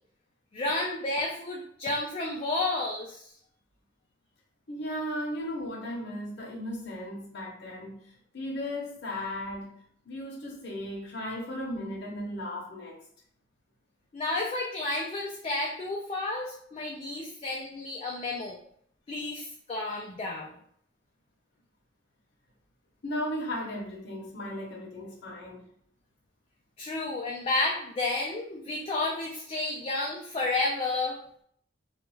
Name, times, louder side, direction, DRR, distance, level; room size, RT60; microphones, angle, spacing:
voice 1, 0.5-3.2 14.1-18.6 19.1-20.5 26.8-31.2, left 2 dB, 30° left, -2 dB, 0.3 m, -31 dB
voice 2, 4.7-7.9 8.3-9.7 10.1-13.0 23.0-25.6, left 1 dB, 65° left, -3 dB, 0.7 m, -36 dB
2.3 x 2.2 x 3.0 m, 0.65 s
head